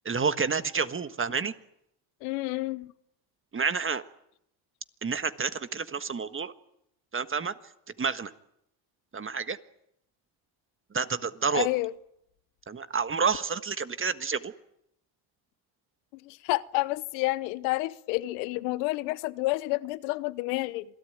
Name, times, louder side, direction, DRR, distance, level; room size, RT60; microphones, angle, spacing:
voice 1, 0.0-1.5 3.5-4.0 5.0-6.5 7.1-7.5 8.0-8.3 9.1-9.6 10.9-11.7 12.7-14.5, right 5 dB, 25° right, 1.5 m, -29 dB
voice 2, 2.2-2.9 11.5-11.9 16.3-20.8, left 20 dB, 85° left, 1.0 m, -29 dB
27.0 x 18.0 x 9.3 m
supercardioid pair, 95°, 50 cm